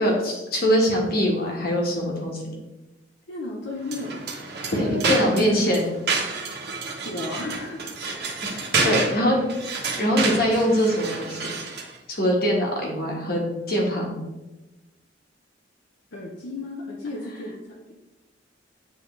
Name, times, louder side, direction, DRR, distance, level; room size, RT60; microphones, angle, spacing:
voice 1, 0.0-2.5 4.7-5.9 8.5-9.4 10.0-11.5 12.1-14.2, equal, 55° left, 0 dB, 1.5 m, -23 dB
voice 2, 3.3-4.1 4.8-5.9 7.0-7.9 8.5-9.3 9.8-9.9 16.1-17.9, left 2 dB, 80° left, -2 dB, 0.8 m, -33 dB
sound 1, 3.8-12.0, right 3 dB, 60° right, 1.2 m, -29 dB
9.1 x 3.8 x 3.2 m, 1.0 s
head